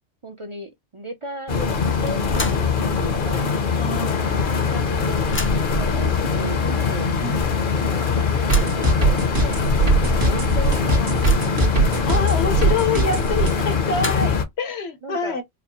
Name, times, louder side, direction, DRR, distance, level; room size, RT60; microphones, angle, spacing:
voice 1, 0.2-3.5 4.5-11.2 15.0-15.4, right 2 dB, 35° right, 0.6 m, -36 dB
sound 1, 1.5-14.4, left 5 dB, 55° left, 0.9 m, -22 dB
sound 2, 2.1-2.8 3.2-3.3 4.3-4.4 4.7-5.8 6.6-6.7 7.1-7.2 8.2-8.9 9.6-9.7 10.1-10.2 10.6-11.7 13.6-14.5, left 2 dB, 20° left, 0.4 m, -33 dB
voice 2, 3.8-4.8 7.2-7.5 11.0-11.3 12.1-15.4, left 4 dB, 70° left, 1.2 m, -27 dB
sound 3, 8.5-13.5, right 3 dB, 70° right, 1.6 m, -20 dB
4.8 x 2.1 x 2.9 m
omnidirectional pair, 1.1 m